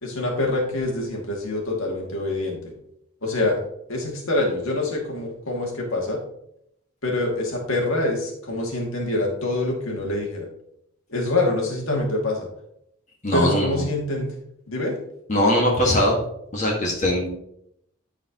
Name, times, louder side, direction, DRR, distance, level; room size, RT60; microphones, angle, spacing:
voice 1, 0.0-2.7 3.2-3.6 3.9-6.2 7.0-10.5 11.1-12.5 13.3-14.3 14.7-14.9, left 2 dB, 75° left, -1 dB, 2.5 m, -25 dB
voice 2, 13.2-13.8 15.3-16.2 16.5-17.3, left 1 dB, 35° left, -3 dB, 1.8 m, -21 dB
13.5 x 4.9 x 3.1 m, 0.74 s
head